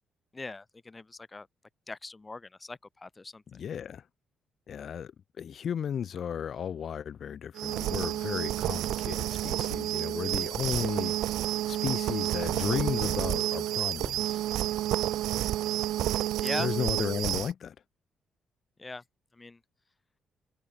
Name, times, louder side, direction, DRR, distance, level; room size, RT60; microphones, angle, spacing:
voice 1, 0.3-1.5 1.9-3.4 16.4-16.7 18.8-19.0 19.4-19.6, left 3 dB, 20° left, 5.0 m, -40 dB
voice 2, 3.5-4.1 4.7-11.2 11.7-14.4 16.6-17.7, left 8 dB, 55° left, 4.5 m, -34 dB
sound 1, 7.6-17.5, right 14 dB, 85° right, 1.7 m, -30 dB
cardioid pair, 90°, 0 cm